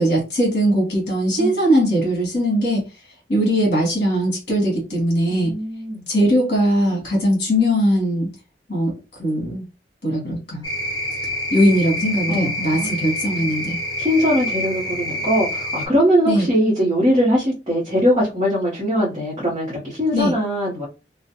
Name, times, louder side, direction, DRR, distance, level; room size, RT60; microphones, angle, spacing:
voice 1, 0.0-2.8 3.3-5.6 6.1-8.3 8.7-8.9 9.2-9.6 10.0-10.6 11.5-13.8 16.3-16.5 20.1-20.3, equal, 55° left, 1.1 m, -20 dB
voice 2, 5.3-6.0 12.3-13.1 14.0-20.9, equal, 30° right, 0.8 m, -21 dB
sound 1, 10.6-15.9, equal, 25° left, 0.6 m, -27 dB
2.4 x 2.1 x 2.8 m
head